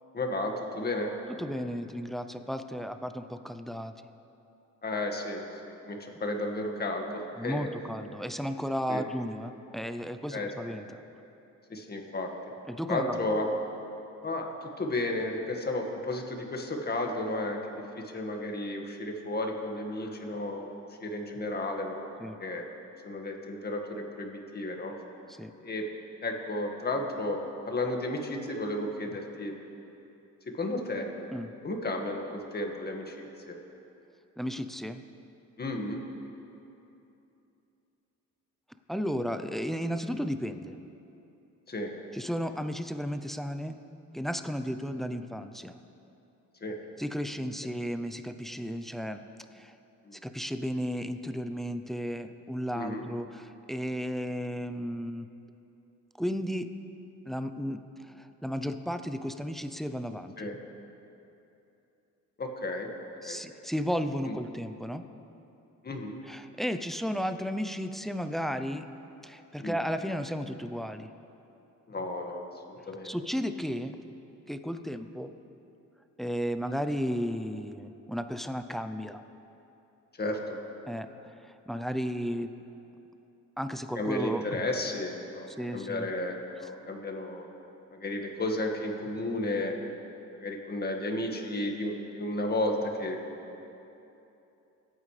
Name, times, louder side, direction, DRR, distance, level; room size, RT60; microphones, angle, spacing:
voice 1, 0.1-1.1 4.8-7.7 8.9-9.0 10.3-10.5 11.7-12.3 12.9-13.5 14.2-20.7 21.0-22.1 22.4-22.6 23.0-24.9 25.6-25.9 26.2-27.4 27.7-29.5 30.6-31.1 31.6-33.6 35.6-36.0 41.7-41.9 46.6-46.8 50.1-50.2 52.7-53.0 60.4-60.6 62.4-62.9 63.2-63.4 64.3-64.4 65.8-66.2 69.6-69.8 71.9-72.4 72.7-73.2 80.2-80.6 84.0-85.5 85.7-87.5 87.9-89.7 90.3-93.2, left 1 dB, 30° left, 2 dB, 1.8 m, -33 dB
voice 2, 1.3-3.9 7.4-11.0 12.7-13.2 22.2-22.4 25.3-25.5 31.3-31.5 34.4-35.0 38.9-40.8 42.1-43.8 44.1-45.8 47.0-49.2 49.5-49.8 50.1-55.3 56.2-56.7 57.2-57.8 58.1-60.3 63.2-65.1 66.3-68.9 69.2-71.1 73.0-74.0 74.5-75.3 76.2-79.2 80.9-81.1 81.4-82.5 83.6-84.4 85.5-86.1, equal, ahead, 9 dB, 0.6 m, -34 dB
22.5 x 9.1 x 3.3 m, 2.9 s
cardioid pair, 90°, 30 cm